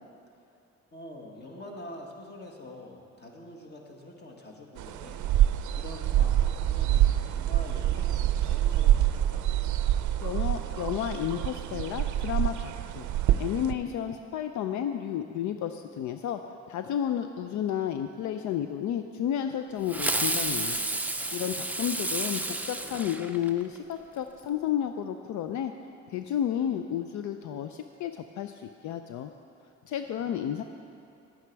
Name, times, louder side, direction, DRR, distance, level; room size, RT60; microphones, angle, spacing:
voice 1, 0.9-9.4 21.4-21.7 22.0-22.2 30.0-30.4, left 1 dB, 35° left, 0 dB, 1.7 m, -46 dB
sound 1, 4.8-13.7, right 12 dB, 75° right, 0.5 m, -26 dB
voice 2, 10.2-13.1 13.4-16.4 16.7-20.8 21.3-25.7 26.1-29.3 29.9-30.6, left 10 dB, 75° left, 7 dB, 0.5 m, -32 dB
Fireworks, 19.9-23.8, right 2 dB, 5° right, 0.5 m, -31 dB
11.0 x 9.2 x 4.6 m, 2.6 s
cardioid pair, 90°, 30 cm